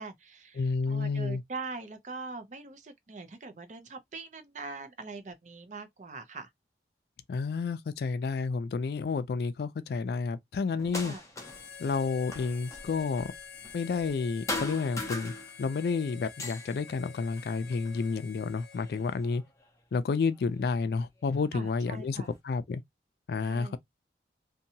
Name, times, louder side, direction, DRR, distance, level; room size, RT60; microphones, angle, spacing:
voice 1, 0.0-6.5 11.0-11.2 21.5-22.3 23.4-23.8, right 3 dB, 40° right, 0.5 m, -42 dB
voice 2, 0.6-1.4 7.3-11.1 11.8-13.3 13.7-19.4 19.9-22.8 23.3-23.8, left 4 dB, 60° left, 0.3 m, -30 dB
sound 1, 10.8-11.7 12.0-14.2 14.5-15.9 16.2-18.1 18.7-19.6 20.6-20.7 21.3-22.3, left 2 dB, 15° left, 0.6 m, -40 dB
Harmonica, 11.4-19.4, left 7 dB, 80° left, 0.7 m, -48 dB
2.7 x 2.2 x 2.7 m
head